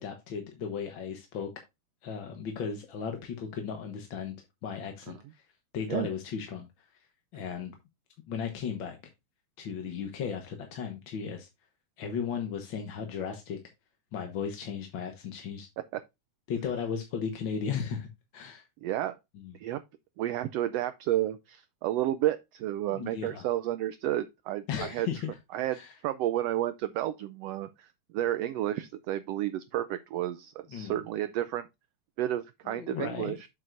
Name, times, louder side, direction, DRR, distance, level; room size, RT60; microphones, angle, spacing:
voice 1, 0.0-1.5 2.0-4.3 4.6-5.4 5.7-6.7 7.3-7.7 8.3-9.0 9.6-11.5 12.0-13.6 14.1-15.7 16.5-18.1 18.3-18.6 19.3-19.5 22.9-23.4 24.7-25.4 25.7-25.9 30.7-31.0 32.6-33.4, left 7 dB, 55° left, 1.4 m, -35 dB
voice 2, 18.8-19.1 19.5-19.8 20.2-25.1 25.5-27.9 28.1-31.6 32.2-33.5, right 13 dB, 85° right, 1.4 m, -31 dB
7.8 x 7.3 x 2.5 m
omnidirectional pair, 3.4 m